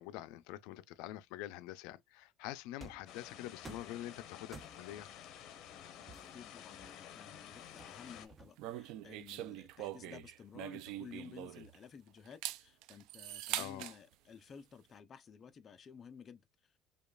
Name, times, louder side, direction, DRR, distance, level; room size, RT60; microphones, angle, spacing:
voice 1, 0.0-5.1 13.6-13.9, left 14 dB, 90° left, 0.4 m, -46 dB
sound 1, 2.8-3.2 3.6-4.0 4.5-5.0 6.1-7.2 7.8-8.8, right 3 dB, 15° right, 0.5 m, -54 dB
sound 2, 3.1-8.3, left 9 dB, 60° left, 0.9 m, -52 dB
voice 2, 6.3-16.8, left 6 dB, 35° left, 0.5 m, -54 dB
sound 3, 8.6-11.8 12.2-14.0, right 14 dB, 75° right, 0.3 m, -43 dB
5.1 x 2.3 x 2.3 m
cardioid pair, 135°, 0 cm